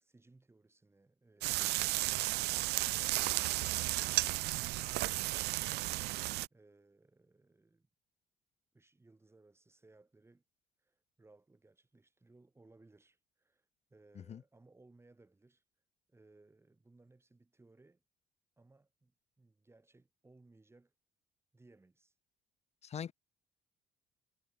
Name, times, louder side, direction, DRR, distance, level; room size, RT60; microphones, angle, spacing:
voice 1, 0.0-6.2 6.5-7.9 8.7-10.4 10.8-15.6 16.1-18.0 18.6-20.9 21.5-22.1, right 2 dB, 15° right, 6.9 m, -64 dB
sound 1, 1.4-6.5, right 20 dB, 80° right, 0.5 m, -33 dB
voice 2, 14.2-14.4 22.8-23.1, left 8 dB, 40° left, 0.9 m, -42 dB
cardioid pair, 110°, 17 cm